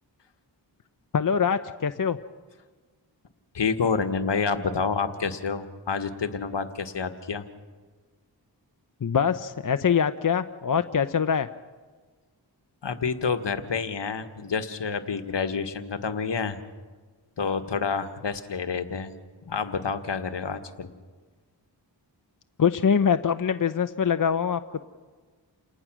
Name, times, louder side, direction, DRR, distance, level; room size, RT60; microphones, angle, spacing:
voice 1, 1.1-2.2 9.0-11.5 22.6-24.8, left 7 dB, 45° left, 10 dB, 0.8 m, -24 dB
voice 2, 3.5-7.4 12.8-16.6 17.4-19.1 19.4-20.9, left 5 dB, 70° left, 9 dB, 1.6 m, -28 dB
29.0 x 19.0 x 6.2 m, 1.4 s
cardioid pair, 50°, 44 cm